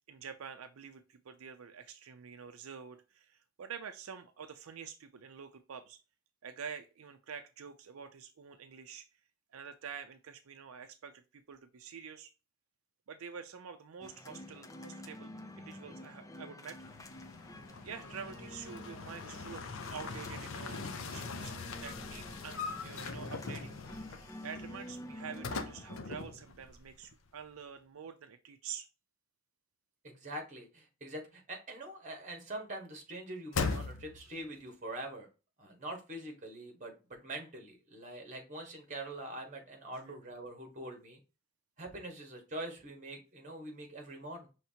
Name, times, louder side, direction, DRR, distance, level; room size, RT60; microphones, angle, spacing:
voice 1, 0.0-6.0 6.4-9.0 9.5-12.3 13.1-15.3 15.6-16.8 17.8-19.6 19.9-21.5 21.8-23.8 24.1-28.9 39.9-40.2, right 7 dB, 90° right, 7 dB, 0.5 m, -47 dB
sound 1, 14.0-26.0, left 1 dB, 15° left, 0.5 m, -49 dB
sound 2, 16.8-27.1 27.4-27.5 33.5-34.4, left 4 dB, 70° left, 0.6 m, -41 dB
voice 2, 30.0-35.3 35.6-41.2 41.8-44.5, right 1 dB, 35° right, 3 dB, 1.4 m, -44 dB
5.7 x 3.2 x 2.7 m, 0.31 s
head